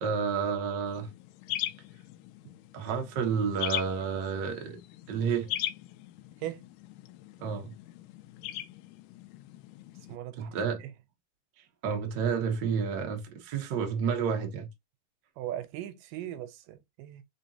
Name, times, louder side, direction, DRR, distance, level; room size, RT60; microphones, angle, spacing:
voice 1, 0.0-1.1 2.7-4.8 5.1-5.5 7.4-7.7 10.4-10.8 11.8-14.7, right 6 dB, 60° right, 1.1 m, -30 dB
sound 1, 0.9-10.2, left 14 dB, 85° left, 2.1 m, -40 dB
voice 2, 10.1-10.5 10.8-10.9 15.4-17.2, right 12 dB, 90° right, 2.4 m, -39 dB
5.0 x 3.6 x 2.8 m
omnidirectional pair, 3.8 m